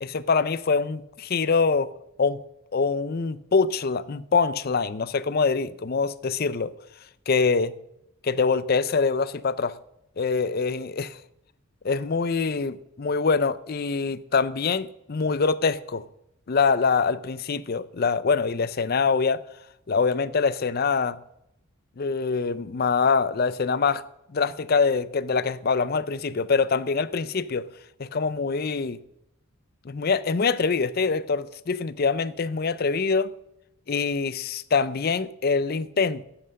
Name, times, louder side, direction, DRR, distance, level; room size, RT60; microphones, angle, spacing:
voice 1, 0.0-1.9 2.2-2.4 2.7-6.7 7.3-7.7 8.2-9.8 10.2-11.2 11.8-16.0 16.5-19.4 19.9-21.2 22.0-24.0 24.3-27.7 28.0-29.0 29.8-33.3 33.9-36.2, left 5 dB, 45° left, 0.5 m, -24 dB
11.0 x 7.9 x 6.5 m
head